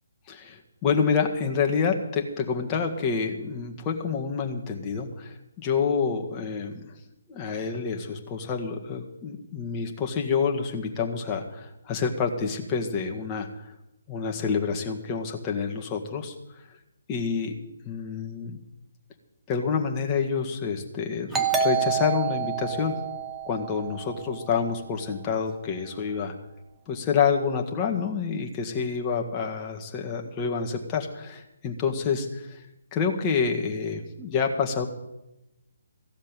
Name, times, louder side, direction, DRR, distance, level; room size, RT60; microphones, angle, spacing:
voice 1, 0.3-6.9 7.3-13.7 14.1-16.3 17.1-18.6 19.5-22.9 23.5-26.3 26.9-32.6 32.9-34.9, left 6 dB, 20° left, 2 dB, 1.8 m, -28 dB
Doorbell, 21.3-24.7, right 7 dB, 10° right, 1.1 m, -28 dB
15.5 x 7.4 x 8.8 m, 0.93 s
figure-of-eight pair, 140°, 0 cm